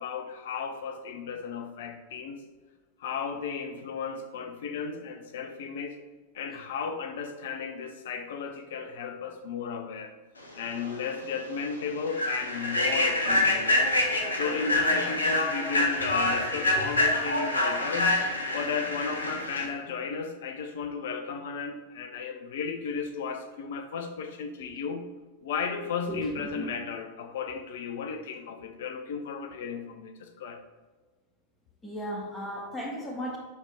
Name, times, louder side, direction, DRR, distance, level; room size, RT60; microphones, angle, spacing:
voice 1, 0.0-2.4 3.0-6.0 6.3-10.1 10.5-13.8 14.3-18.2 18.5-25.1 25.4-30.6, left 5 dB, 55° left, 7 dB, 0.7 m, -34 dB
Human voice / Train, 10.8-10.9 11.4-11.6 12.1-19.7, left 2 dB, 75° left, 1.1 m, -26 dB
voice 2, 16.7-17.0 24.6-24.7 26.1-26.7 31.8-33.4, equal, 15° left, -2 dB, 2.0 m, -36 dB
11.0 x 3.7 x 3.6 m, 1.3 s
figure-of-eight pair, 90°, 0 cm